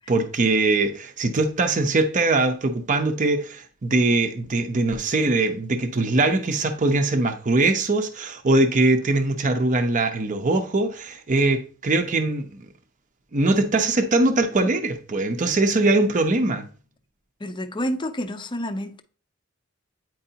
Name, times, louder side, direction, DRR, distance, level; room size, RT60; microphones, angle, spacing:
voice 1, 0.1-12.4 13.3-16.6, right 2 dB, 40° right, 0.6 m, -22 dB
voice 2, 17.4-19.0, equal, 25° left, 0.5 m, -29 dB
8.9 x 4.7 x 2.8 m
head